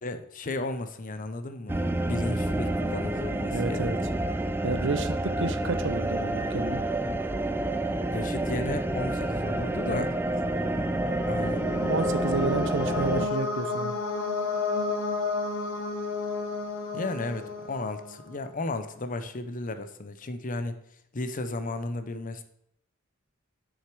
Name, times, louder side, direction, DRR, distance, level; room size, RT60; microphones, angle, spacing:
voice 1, 0.0-1.8 2.1-3.9 8.1-10.1 11.3-11.6 16.9-20.8 21.1-22.4, left 2 dB, 40° left, 10 dB, 0.7 m, -34 dB
sound 1, 1.7-13.3, right 1 dB, 10° right, 0.4 m, -29 dB
voice 2, 3.5-4.0 4.6-6.8 9.8-10.0 11.9-14.0, right 3 dB, 65° right, 11 dB, 0.7 m, -30 dB
sound 2, 10.6-18.4, left 3 dB, 70° left, 1.3 m, -32 dB
9.1 x 6.4 x 4.8 m, 0.75 s
head